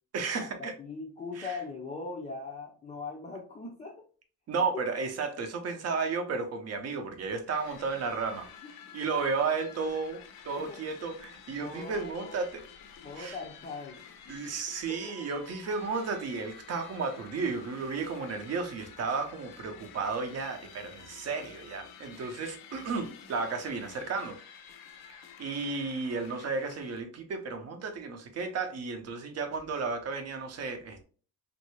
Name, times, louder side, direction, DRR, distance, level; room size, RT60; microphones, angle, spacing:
voice 1, 0.1-0.7 1.4-1.6 4.5-8.5 8.9-12.6 13.2-13.4 14.3-24.4 25.1-31.0, right 4 dB, 45° right, 0.6 m, -33 dB
voice 2, 0.8-4.1 4.7-4.8 8.6-8.7 9.1-9.2 10.6-10.8 11.6-12.4 13.0-14.3 15.0-15.1, left 4 dB, 20° left, 0.4 m, -40 dB
sound 1, 7.5-27.0, left 7 dB, 65° left, 0.6 m, -51 dB
3.1 x 2.6 x 3.0 m
cardioid pair, 160°, 37 cm